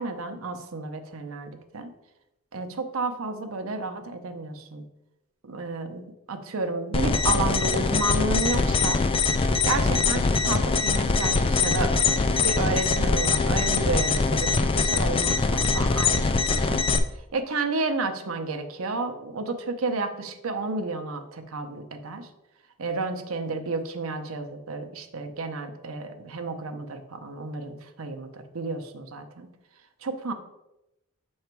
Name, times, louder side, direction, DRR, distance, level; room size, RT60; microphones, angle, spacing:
voice 1, 0.0-1.9 2.5-4.9 5.4-6.0 6.3-9.0 9.6-11.9 12.4-16.8 17.3-22.3 22.8-29.5 30.0-30.3, right 3 dB, 90° right, 7 dB, 0.7 m, -31 dB
sound 1, 6.9-17.0, left 4 dB, 25° left, 0.3 m, -23 dB
6.7 x 3.2 x 4.5 m, 0.91 s
head